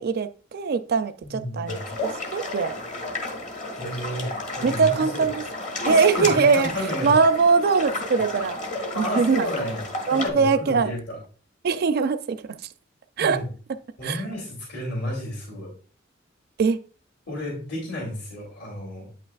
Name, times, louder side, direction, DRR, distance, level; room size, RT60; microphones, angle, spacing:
voice 1, 0.0-2.7 4.6-5.4 5.9-6.7 7.0-8.6 9.0-9.5 10.1-10.9 11.6-12.4 13.2-13.4 14.0-14.2 16.6-16.8, right 5 dB, 55° right, 10 dB, 0.4 m, -21 dB
voice 2, 1.2-1.8 3.7-4.3 4.6-5.3 5.8-7.1 8.9-9.8 10.1-11.2 13.2-13.5 14.0-15.7 17.3-19.1, equal, 65° left, -4 dB, 2.9 m, -31 dB
sound 1, 1.7-10.3, left 2 dB, 40° left, 1.4 m, -32 dB
8.7 x 5.8 x 2.3 m, 0.41 s
head